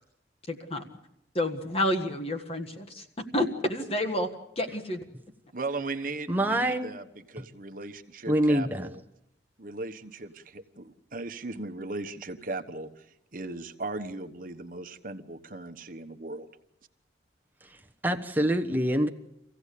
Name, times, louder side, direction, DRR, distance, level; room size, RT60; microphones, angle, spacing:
voice 1, 0.5-0.8 1.3-3.1 3.3-4.3 4.6-5.0, left 1 dB, 35° left, 5 dB, 1.6 m, -29 dB
voice 2, 5.5-9.0 9.6-13.0 13.3-16.5, right 2 dB, 50° right, 8 dB, 1.2 m, -37 dB
voice 3, 6.3-6.9 8.3-8.9 17.6-17.8 18.0-19.1, right 1 dB, 10° right, 5 dB, 1.1 m, -25 dB
25.5 x 16.0 x 8.4 m, 0.85 s
head